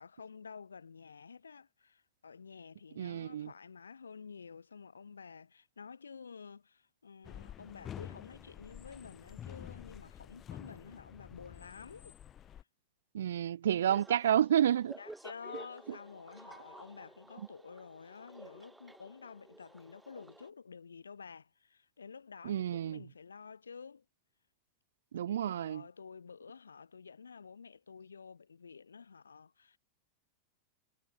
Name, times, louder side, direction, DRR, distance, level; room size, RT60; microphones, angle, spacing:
voice 1, 0.0-12.1 15.0-24.0 25.5-29.8, left 5 dB, 75° left, 1.1 m, -50 dB
voice 2, 3.0-3.5 13.1-14.9 22.4-23.0 25.1-25.8, right 10 dB, 65° right, 0.4 m, -30 dB
sound 1, 7.2-12.6, left 10 dB, 25° left, 1.2 m, -49 dB
sound 2, 13.9-20.5, right 2 dB, 5° right, 1.2 m, -53 dB
figure-of-eight pair, 90°, 0 cm